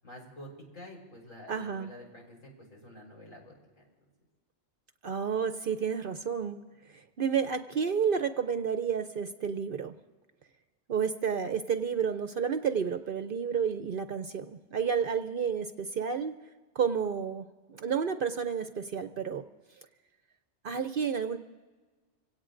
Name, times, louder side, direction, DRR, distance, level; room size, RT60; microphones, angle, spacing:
voice 1, 0.0-3.8, left 1 dB, 80° left, -2 dB, 4.9 m, -49 dB
voice 2, 1.5-1.9 5.0-6.6 6.9-9.9 10.9-16.3 16.7-19.4 20.6-21.4, right 6 dB, 55° right, 9 dB, 0.7 m, -31 dB
25.5 x 17.0 x 2.6 m, 1.3 s
omnidirectional pair, 1.3 m